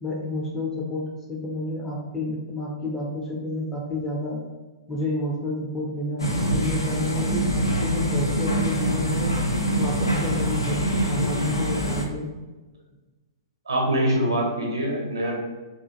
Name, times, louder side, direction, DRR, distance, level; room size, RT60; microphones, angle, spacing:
voice 1, 0.0-4.4 4.9-9.3 9.8-10.8 11.1-12.3, left 1 dB, 15° left, -3 dB, 0.6 m, -30 dB
sound 1, 6.2-12.0, equal, 80° left, 0.4 m, -24 dB
voice 2, 13.7-15.4, right 1 dB, 75° right, -1 dB, 0.8 m, -24 dB
2.5 x 2.5 x 2.5 m, 1.2 s
figure-of-eight pair, 110°, 2 cm